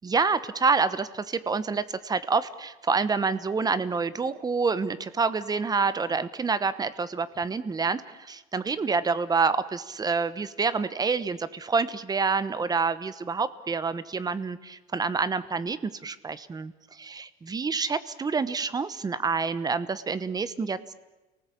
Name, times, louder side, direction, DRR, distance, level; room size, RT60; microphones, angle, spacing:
voice 1, 0.0-20.9, right 4 dB, 20° right, 15 dB, 1.1 m, -27 dB
30.0 x 19.0 x 8.5 m, 1.1 s
cardioid pair, 140°, 21 cm